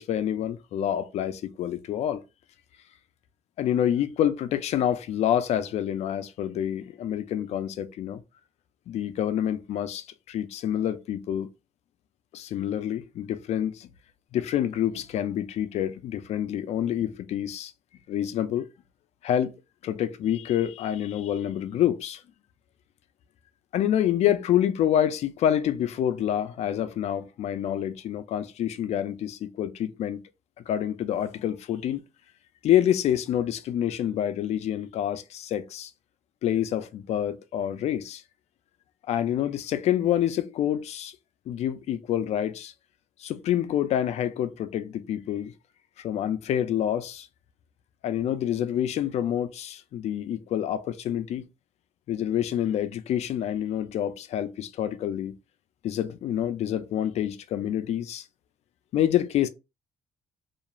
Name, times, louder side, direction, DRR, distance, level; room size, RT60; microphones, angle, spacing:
voice 1, 0.0-2.2 3.6-8.2 8.9-11.5 12.3-13.9 14.3-17.7 18.1-18.7 19.2-19.5 19.8-22.2 23.7-30.2 30.7-32.0 32.6-35.9 36.4-38.2 39.1-41.2 41.5-42.7 43.2-45.5 46.0-47.3 48.0-51.5 52.1-55.3 55.8-58.2 58.9-59.5, left 10 dB, 60° left, 0.4 m, -27 dB
2.4 x 2.3 x 2.9 m
cardioid pair, 125°, 13 cm